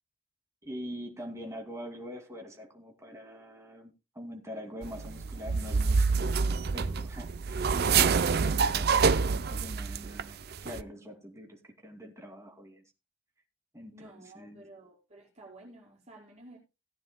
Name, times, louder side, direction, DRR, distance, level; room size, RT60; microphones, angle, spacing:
voice 1, 0.6-12.8 13.7-14.8, equal, 15° right, 2.4 m, -44 dB
sound 1, 4.8-10.2 10.5-10.8, right 5 dB, 50° right, 0.5 m, -27 dB
voice 2, 13.9-16.6, right 2 dB, 35° right, 5.2 m, -52 dB
18.0 x 9.6 x 2.2 m
head